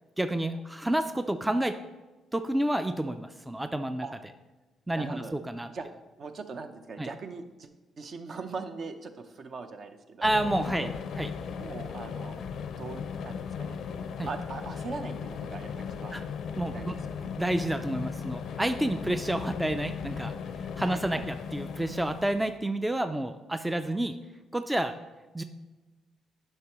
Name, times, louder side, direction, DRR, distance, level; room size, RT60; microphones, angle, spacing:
voice 1, 0.2-1.8 2.3-4.1 4.9-5.7 7.0-7.1 10.2-10.9 11.2-11.3 14.2-14.3 16.1-16.2 16.6-16.9 17.4-24.2 24.5-25.0 25.3-25.4, right 1 dB, 10° right, 8 dB, 0.4 m, -29 dB
voice 2, 4.9-5.4 5.7-5.9 6.2-7.7 8.0-10.3 10.8-10.9 11.5-12.4 12.8-16.2 16.7-17.3 20.8-21.3, right 4 dB, 50° right, 7 dB, 0.7 m, -41 dB
sound 1, 10.2-22.6, left 6 dB, 70° left, 0.5 m, -37 dB
9.5 x 5.7 x 3.0 m, 1.2 s
cardioid pair, 90°, 0 cm